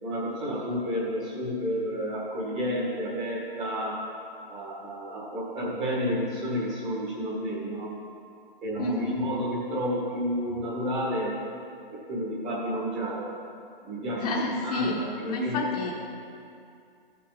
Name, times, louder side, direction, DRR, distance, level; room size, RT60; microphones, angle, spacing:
voice 1, 0.0-4.0 4.5-7.9 8.6-11.4 12.1-13.3 13.8-15.8, equal, 20° right, -5 dB, 1.8 m, -31 dB
voice 2, 8.8-9.2 14.1-15.0 15.2-15.9, left 2 dB, 40° left, -2 dB, 1.2 m, -30 dB
14.0 x 5.9 x 4.1 m, 2.5 s
hypercardioid pair, 165°, 30 cm